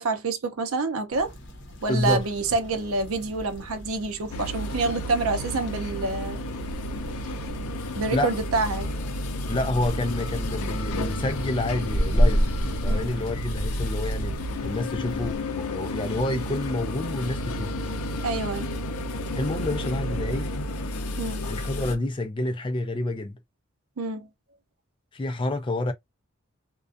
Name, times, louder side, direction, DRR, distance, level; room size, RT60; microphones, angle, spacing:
voice 1, 0.0-1.3 1.8-6.4 8.0-8.9 12.9-13.1 18.2-18.7 21.2-21.5 24.0-24.3, right 3 dB, 80° right, 0.6 m, -27 dB
sound 1, 1.1-15.4, equal, 55° left, 0.8 m, -32 dB
voice 2, 1.9-2.2 7.8-8.3 9.5-12.5 12.8-17.7 19.3-20.5 21.5-23.4 25.1-25.9, left 2 dB, 25° left, 0.3 m, -29 dB
sound 2, 4.3-22.0, left 1 dB, 90° left, 0.5 m, -31 dB
2.4 x 2.2 x 2.4 m
head